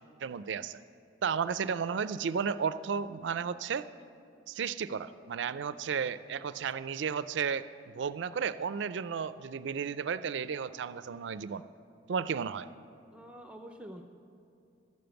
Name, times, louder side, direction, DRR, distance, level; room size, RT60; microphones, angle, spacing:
voice 1, 0.2-0.8 1.2-3.9 4.5-11.6 12.1-12.7, right 6 dB, 70° right, 14 dB, 0.4 m, -33 dB
voice 2, 13.1-14.0, equal, 5° right, 4 dB, 0.5 m, -46 dB
12.5 x 7.0 x 7.8 m, 2.5 s
head